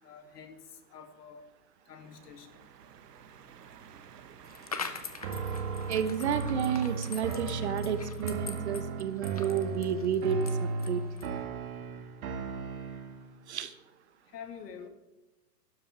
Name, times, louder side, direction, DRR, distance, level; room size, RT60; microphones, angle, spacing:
voice 1, 0.0-0.6 0.9-1.5 1.9-2.5 14.3-14.9, left 7 dB, 75° left, 6 dB, 2.4 m, -47 dB
sound 1, 2.0-7.4, right 7 dB, 75° right, 1.6 m, -52 dB
sound 2, 4.4-11.4, left 5 dB, 25° left, 0.4 m, -43 dB
sound 3, 5.2-13.3, right 4 dB, 60° right, 2.2 m, -35 dB
voice 2, 5.9-11.3 13.5-13.7, right 8 dB, 45° right, 13 dB, 0.8 m, -31 dB
12.5 x 10.5 x 5.8 m, 1.0 s
hypercardioid pair, 175°, 48 cm